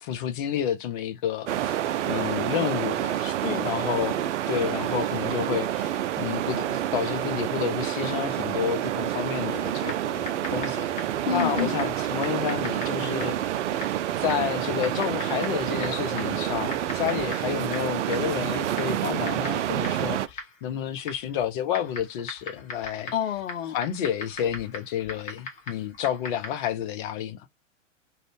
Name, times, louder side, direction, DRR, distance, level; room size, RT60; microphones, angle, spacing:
voice 1, 0.0-1.8 2.1-3.3 3.6-13.6 14.2-23.1 23.7-27.5, left 10 dB, 40° left, 0.6 m, -30 dB
sound 1, 1.5-20.3, right 11 dB, 65° right, 0.5 m, -28 dB
voice 2, 3.2-3.7 11.3-11.8 23.1-23.8, left 8 dB, 80° left, 0.7 m, -29 dB
Typing, 9.8-26.7, left 3 dB, 20° left, 1.1 m, -41 dB
2.5 x 2.3 x 3.3 m
hypercardioid pair, 110°, 38 cm